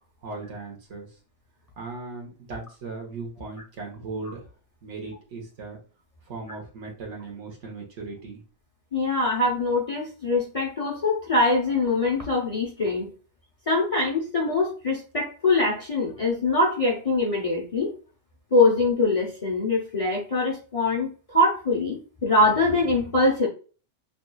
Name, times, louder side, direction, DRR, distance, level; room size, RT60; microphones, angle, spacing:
voice 1, 0.2-1.1 1.8-4.5 4.8-5.8 6.3-8.4, right 3 dB, 65° right, 0 dB, 1.4 m, -37 dB
voice 2, 8.9-13.1 13.7-17.9 18.5-23.5, left 2 dB, 30° left, -2 dB, 0.8 m, -23 dB
6.0 x 2.7 x 2.3 m, 0.37 s
omnidirectional pair, 1.3 m